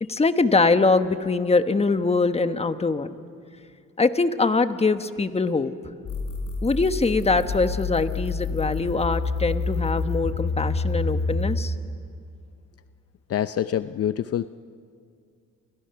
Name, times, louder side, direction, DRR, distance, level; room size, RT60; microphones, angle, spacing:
voice 1, 0.0-3.1 4.0-5.7 6.6-11.7, left 3 dB, 20° left, 10 dB, 1.2 m, -23 dB
sound 1, 6.0-11.6, left 3 dB, 70° left, 5.4 m, -28 dB
voice 2, 13.3-14.5, left 10 dB, 50° left, 12 dB, 0.6 m, -26 dB
29.5 x 29.0 x 6.0 m, 2.3 s
cardioid pair, 90°, 30 cm